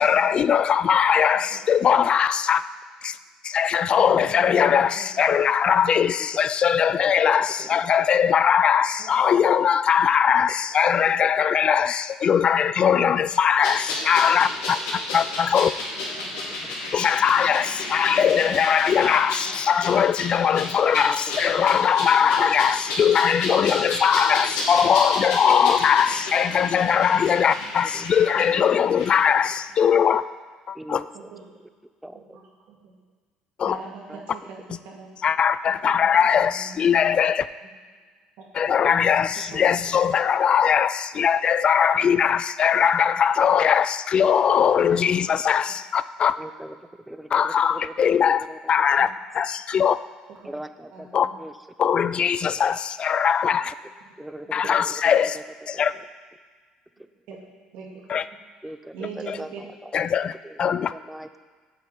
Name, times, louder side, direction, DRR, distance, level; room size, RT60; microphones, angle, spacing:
voice 1, 0.0-2.6 3.0-3.2 3.4-15.7 16.9-30.2 30.7-31.0 33.6-33.8 34.7-34.8 35.2-37.5 38.5-46.3 47.3-50.0 51.1-51.3 51.8-53.7 54.5-55.4 55.7-55.9 58.1-58.3 59.3-59.4 59.9-60.9, left 8 dB, 45° left, 15 dB, 0.3 m, -20 dB
voice 2, 4.0-5.1 9.0-9.4 12.8-13.1 16.0-16.4 18.0-18.1 18.4-18.6 19.0-19.1 19.5-19.6 26.6-27.0 28.4-28.7 31.1-31.4 32.1-32.4 32.7-32.9 33.7-34.6 34.9-35.1 35.7-35.9 36.5-36.8 38.4-38.5 39.5-39.7 49.0-49.1 50.3-50.5 50.9-51.4 54.5-54.6 57.3-57.4 57.7-58.2 58.9-59.6, right 5 dB, 75° right, -1 dB, 2.0 m, -41 dB
voice 3, 7.6-8.3 10.9-11.5 16.4-16.8 20.9-21.8 22.2-22.5 22.9-23.0 23.4-23.5 26.5-26.6 27.9-29.1 30.7-31.3 31.6-31.7 32.0-32.4 34.1-34.5 38.8-40.0 42.0-42.2 46.4-46.8 47.1-49.0 50.4-51.5 51.8-52.8 54.2-55.4 55.7-55.8 58.6-61.5, right 1 dB, 5° right, 10 dB, 0.5 m, -41 dB
sound 1, 13.6-29.1 29.4-29.5, left 2 dB, 90° left, 2.3 m, -32 dB
7.5 x 5.0 x 7.2 m, 1.5 s
supercardioid pair, 85°, 2 cm